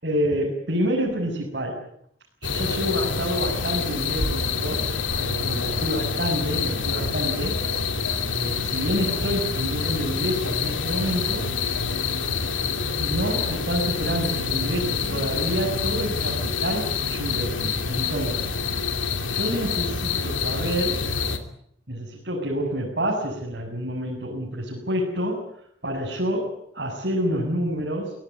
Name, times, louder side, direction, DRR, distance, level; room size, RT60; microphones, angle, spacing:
voice 1, 0.0-1.8 2.4-4.9 5.2-7.6 8.3-11.5 13.0-18.5 19.3-21.0 21.9-25.5 25.8-28.1, equal, 60° right, -2 dB, 7.0 m, -28 dB
sound 1, 2.4-21.4, left 5 dB, 85° left, 2.8 m, -27 dB
24.5 x 18.0 x 9.8 m, 0.69 s
head